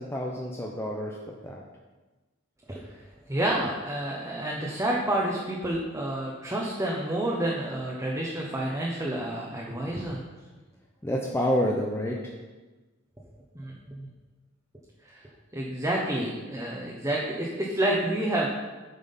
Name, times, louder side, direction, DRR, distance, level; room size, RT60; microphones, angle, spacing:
voice 1, 0.0-1.6 11.0-12.3, equal, 10° left, -2 dB, 0.8 m, -29 dB
voice 2, 3.3-10.2 13.5-14.1 15.1-15.2 15.5-18.5, right 1 dB, 15° right, -3 dB, 1.1 m, -29 dB
9.3 x 6.1 x 5.5 m, 1.2 s
head